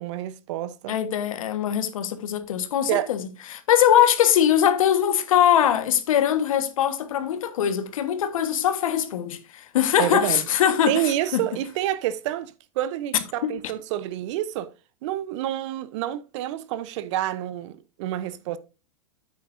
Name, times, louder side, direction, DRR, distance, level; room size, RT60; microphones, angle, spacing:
voice 1, 0.0-1.0 2.9-3.1 10.0-10.4 10.9-14.7 15.0-18.6, right 13 dB, 60° right, 0.9 m, -28 dB
voice 2, 0.9-11.0 11.3-11.4 13.4-13.5, left 10 dB, 75° left, 1.4 m, -22 dB
9.1 x 8.4 x 2.6 m
hypercardioid pair, 120°, 18 cm